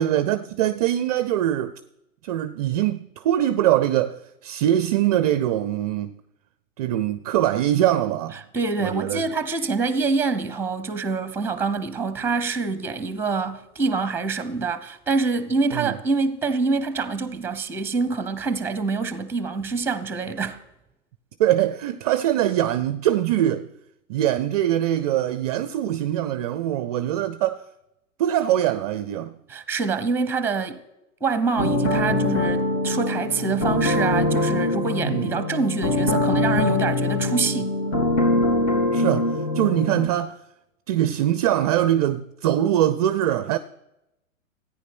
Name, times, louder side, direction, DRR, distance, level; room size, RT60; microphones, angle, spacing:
voice 1, 0.0-1.7 2.2-6.1 6.8-8.4 8.8-9.3 15.7-16.0 21.4-23.7 24.1-27.6 28.2-29.3 35.0-35.4 38.9-40.4 40.9-43.6, right 12 dB, 30° right, 0.4 m, -23 dB
voice 2, 8.5-20.6 29.5-30.8 31.2-37.8, right 4 dB, 5° right, 0.8 m, -26 dB
sound 1, 31.6-40.1, left 2 dB, 65° left, 4.0 m, -23 dB
13.5 x 9.6 x 6.0 m
figure-of-eight pair, 110°, 41 cm